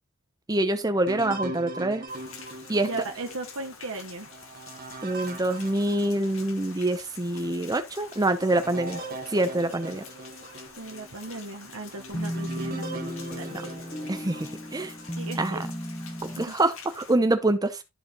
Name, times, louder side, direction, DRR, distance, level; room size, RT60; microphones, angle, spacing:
voice 1, 0.5-2.0 2.7-2.9 5.0-9.0 9.3-10.0 13.5-13.6 14.1-14.9 15.4-15.6 16.2-17.8, right 2 dB, 15° right, 0.7 m, -26 dB
sound 1, 1.1-6.8 7.3-7.4 8.0-15.2 15.8-16.4, right 2 dB, 40° right, 1.4 m, -41 dB
Rain, 2.1-17.1, left 5 dB, 65° left, 2.2 m, -47 dB
voice 2, 2.8-4.3 10.7-13.0 13.3-13.7 15.1-15.6 16.4-16.5, right 2 dB, 75° right, 1.2 m, -37 dB
sound 2, 12.1-16.5, equal, 10° left, 1.2 m, -35 dB
13.0 x 5.0 x 3.0 m
head